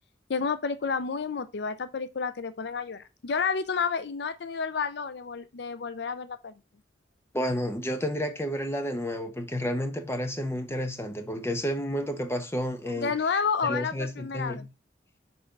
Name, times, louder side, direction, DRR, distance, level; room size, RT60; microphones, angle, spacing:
voice 1, 0.3-6.5 13.0-14.7, left 5 dB, 60° left, 0.5 m, -30 dB
voice 2, 7.3-13.1 13.6-14.7, equal, 15° left, 1.0 m, -31 dB
6.7 x 4.4 x 5.2 m
head